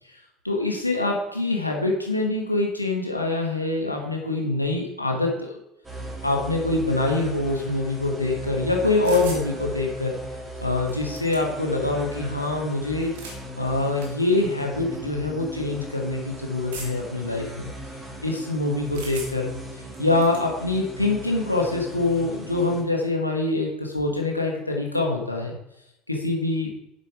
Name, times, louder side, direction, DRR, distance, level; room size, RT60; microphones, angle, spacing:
voice 1, 0.4-5.6 6.2-10.1 10.6-13.1 13.6-17.7 18.2-19.5 20.0-25.6 26.1-26.7, left 2 dB, 90° left, 0 dB, 1.7 m, -25 dB
sound 1, 5.8-22.8, right 1 dB, 15° right, 3.9 m, -38 dB
sound 2, 9.0-9.5 10.6-10.7 10.9-11.7 12.9-13.4 14.0-14.1 14.9-15.1 16.7-17.1 18.9-19.6 19.9-20.5, right 3 dB, 65° right, 2.2 m, -39 dB
9.7 x 7.8 x 5.0 m, 0.85 s
figure-of-eight pair, 65°, 0 cm